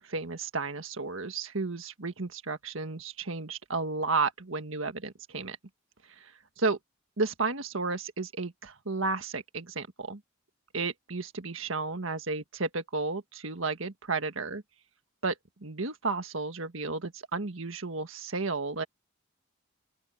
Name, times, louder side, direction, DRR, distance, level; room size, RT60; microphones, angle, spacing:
voice 1, 0.0-5.6 6.2-6.8 7.2-10.2 10.7-14.6 15.2-15.3 15.6-18.8, right 3 dB, 70° right, 1.7 m, -33 dB
open air
head